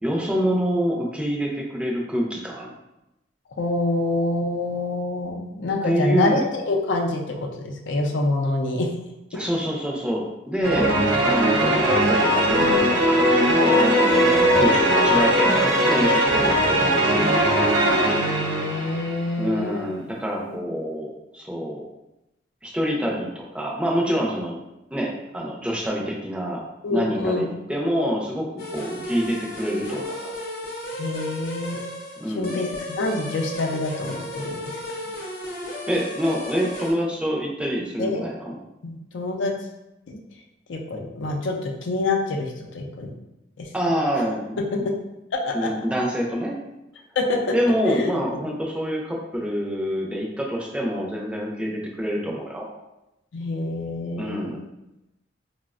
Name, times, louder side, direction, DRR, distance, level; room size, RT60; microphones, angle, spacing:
voice 1, 0.0-2.7 5.8-6.4 9.3-11.0 11.2-17.8 19.4-21.8 22.6-24.6 24.9-26.6 26.9-28.5 28.7-30.3 32.2-32.6 35.9-38.6 43.7-44.6 45.5-46.6 47.5-52.7 54.1-54.6, equal, 5° right, -2 dB, 0.4 m, -26 dB
voice 2, 3.6-8.9 10.7-11.0 18.1-20.1 20.4-20.6 26.8-27.5 31.0-31.8 32.3-34.8 38.0-38.2 38.8-39.5 40.1-40.2 40.7-43.1 43.6-43.7 44.7-44.9 45.4-45.7 47.2-47.5 47.9-48.1 53.3-54.6, left 2 dB, 85° left, 1 dB, 0.5 m, -26 dB
sound 1, 10.6-19.2, equal, 80° right, 0.6 m, -19 dB
sound 2, 28.6-36.9, left 1 dB, 50° left, 0.7 m, -34 dB
4.0 x 2.0 x 2.4 m, 0.92 s
head